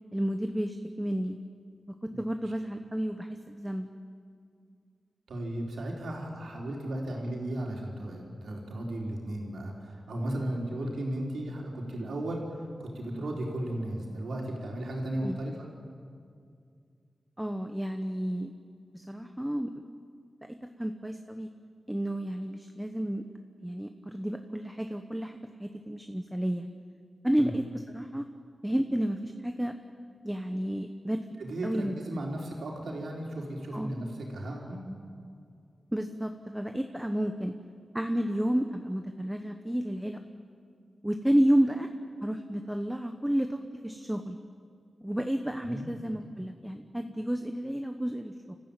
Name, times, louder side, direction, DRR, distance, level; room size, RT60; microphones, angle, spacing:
voice 1, 0.1-1.4 2.0-3.9 15.2-15.4 17.4-18.5 18.9-19.8 20.8-21.5 21.9-23.2 23.6-26.7 27.2-28.3 28.6-29.7 30.2-31.3 31.6-32.0 33.7-34.0 35.9-37.6 37.9-40.2 41.0-41.9 42.2-43.6 43.8-44.4 45.0-48.5, equal, 5° right, 6 dB, 0.9 m, -31 dB
voice 2, 5.3-15.5 27.4-27.5 31.4-34.8 45.6-45.9, right 1 dB, 90° right, -1 dB, 4.4 m, -35 dB
29.5 x 15.0 x 8.9 m, 2.3 s
wide cardioid pair, 125°, 0 cm